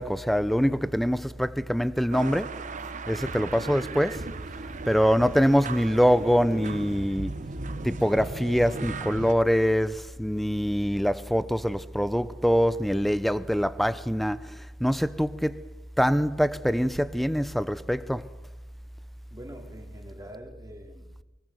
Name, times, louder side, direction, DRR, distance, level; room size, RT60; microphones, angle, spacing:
voice 1, 0.0-2.6 3.1-4.3 4.9-7.3 7.8-15.6 16.0-18.2, equal, ahead, 0.7 m, -24 dB
sound 1, 2.1-9.3, right 3 dB, 40° right, 0.9 m, -37 dB
voice 2, 19.3-21.2, equal, 20° right, 3.9 m, -45 dB
23.5 x 19.0 x 7.9 m
head